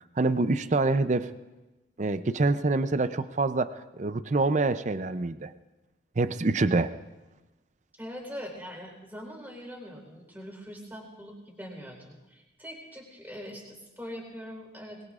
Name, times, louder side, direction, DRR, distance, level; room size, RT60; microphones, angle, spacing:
voice 1, 0.2-1.3 2.0-5.5 6.2-6.9, right 3 dB, 40° right, 12 dB, 0.5 m, -26 dB
voice 2, 7.9-15.0, equal, 10° right, -1 dB, 3.9 m, -42 dB
23.5 x 21.0 x 2.5 m, 1.1 s
head